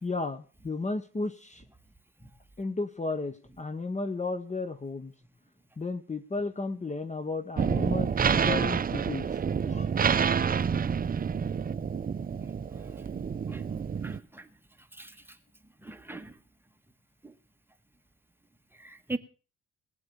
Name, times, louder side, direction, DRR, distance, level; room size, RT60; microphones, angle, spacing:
voice 1, 0.0-1.6 2.6-5.1 5.8-9.3 9.6-10.6, left 3 dB, 25° left, 12 dB, 1.2 m, -34 dB
sound 1, 7.6-14.2, right 6 dB, 30° right, 0.6 m, -28 dB
voice 2, 13.5-14.4 15.0-15.1 15.8-16.3 18.8-19.2, right 2 dB, 5° right, 7 dB, 1.5 m, -39 dB
19.5 x 8.1 x 6.9 m, 0.37 s
cardioid pair, 90°, 30 cm